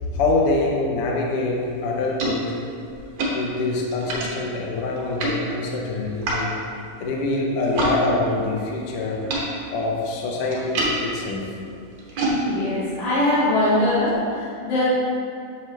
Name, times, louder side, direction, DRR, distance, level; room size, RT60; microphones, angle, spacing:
voice 1, 0.1-2.6 3.3-6.5 7.0-9.2 9.7-11.4, left 2 dB, 70° left, -2 dB, 1.4 m, -25 dB
sound 1, 1.5-8.0 8.3-14.1, right 1 dB, 60° right, 1.3 m, -30 dB
voice 2, 12.4-14.8, left 1 dB, 90° left, -12 dB, 2.8 m, -22 dB
7.2 x 5.4 x 3.2 m, 2.4 s
omnidirectional pair, 3.4 m